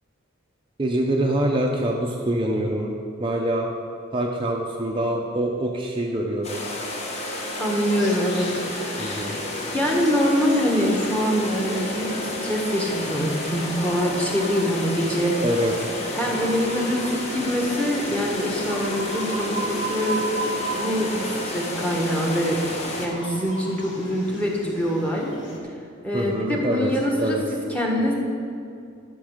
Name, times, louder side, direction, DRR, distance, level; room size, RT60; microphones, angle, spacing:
voice 1, 0.8-2.9 3.2-3.7 4.1-6.6 9.0-9.4 15.4-15.9 26.1-26.9 27.2-27.4, right 1 dB, 25° right, -1 dB, 0.6 m, -25 dB
sound 1, 6.4-23.1, left 1 dB, 35° left, 1.4 m, -31 dB
voice 2, 7.6-8.6 8.9-9.4 9.7-15.3 16.1-22.6 23.0-25.3 26.0-28.1, equal, 5° left, -1 dB, 1.4 m, -24 dB
sound 2, 7.7-25.6, right 1 dB, 65° left, 1.8 m, -37 dB
12.5 x 5.4 x 6.5 m, 2.5 s
head